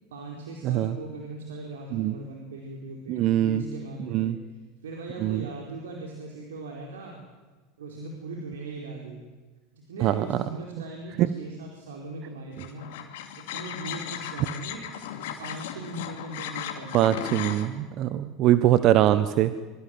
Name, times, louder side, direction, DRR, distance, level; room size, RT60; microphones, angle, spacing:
voice 1, 0.1-4.4 4.8-7.2 7.8-9.2 9.7-13.0 13.4-14.8 15.1-17.4, right 2 dB, 75° right, 0 dB, 4.5 m, -39 dB
voice 2, 0.6-0.9 1.9-2.1 3.1-3.6 4.1-4.3 5.2-5.4 10.0-10.4 16.9-19.5, right 12 dB, 50° right, 13 dB, 1.2 m, -22 dB
sound 1, 12.6-17.7, left 10 dB, 65° left, 2.9 m, -37 dB
26.5 x 24.0 x 7.9 m, 1.3 s
hypercardioid pair, 80°, 0 cm